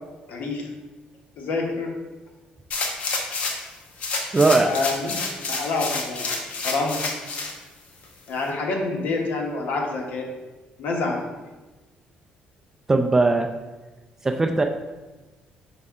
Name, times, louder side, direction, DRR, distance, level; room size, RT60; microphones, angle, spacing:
voice 1, 0.3-0.7 1.4-2.0 4.2-4.3 4.6-7.1 8.3-10.3 10.8-11.2, left 3 dB, 70° left, 1 dB, 1.1 m, -27 dB
sound 1, 2.7-3.7 4.0-7.5 8.0-8.1, left 3 dB, 50° left, 0.9 m, -29 dB
voice 2, 4.3-4.7 12.9-13.5 14.2-14.6, right 3 dB, 15° right, 4 dB, 0.3 m, -19 dB
5.4 x 5.3 x 3.6 m, 1.2 s
cardioid pair, 150°, 3 cm